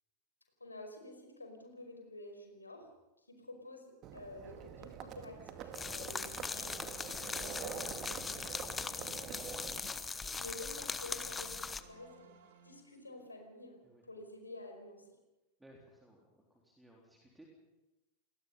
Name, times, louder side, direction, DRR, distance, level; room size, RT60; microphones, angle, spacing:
voice 1, 0.6-2.9 3.3-8.4 10.4-12.4 12.6-13.8 14.1-15.1, left 2 dB, 80° left, 4 dB, 5.0 m, -50 dB
Livestock farm animals working animals, 4.0-9.8, right 8 dB, 35° right, 2.0 m, -46 dB
sound 1, 5.7-11.8, left 4 dB, 15° left, 1.1 m, -40 dB
sound 2, 6.2-13.2, right 7 dB, 55° right, 2.6 m, -57 dB
voice 2, 15.6-17.5, right 1 dB, 5° right, -1 dB, 3.8 m, -61 dB
28.0 x 20.0 x 5.6 m, 1.0 s
figure-of-eight pair, 90°, 0 cm